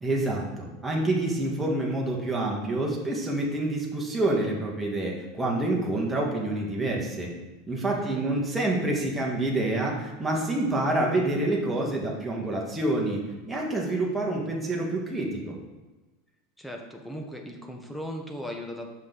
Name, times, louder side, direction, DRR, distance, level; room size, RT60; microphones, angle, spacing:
voice 1, 0.0-7.3 7.7-13.2 13.5-15.5, right 2 dB, 10° right, -3 dB, 2.0 m, -27 dB
voice 2, 7.9-8.3 16.6-18.9, equal, 5° left, 2 dB, 1.3 m, -37 dB
7.3 x 6.2 x 4.0 m, 1.2 s
hypercardioid pair, 90°, 0 cm